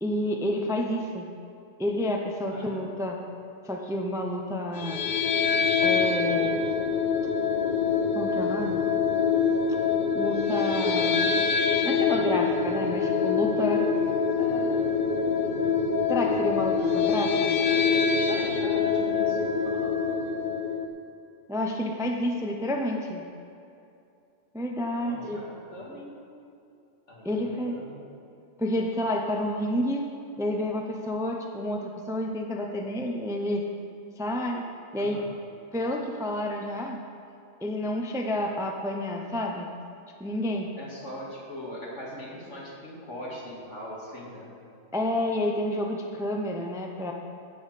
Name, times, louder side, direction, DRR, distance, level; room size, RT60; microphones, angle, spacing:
voice 1, 0.0-1.3 1.8-3.2 3.6-5.1 5.8-6.6 8.1-8.8 10.1-11.3 11.8-13.9 16.1-17.6 21.5-23.2 24.5-25.4 27.2-27.8 28.6-30.1 30.4-33.6 34.2-34.6 34.9-35.2 35.7-37.0 37.6-39.7 40.2-40.7 44.9-47.1, left 1 dB, 5° right, 1 dB, 0.6 m, -29 dB
voice 2, 2.5-2.8 14.4-14.9 16.8-17.3 18.3-19.4 19.7-20.0 25.0-26.1 27.1-28.0 35.0-35.3 40.8-44.5, equal, 65° left, -5 dB, 2.6 m, -41 dB
sound 1, 4.7-20.9, left 5 dB, 50° left, 0.7 m, -25 dB
15.5 x 6.2 x 5.0 m, 2.6 s
omnidirectional pair, 1.3 m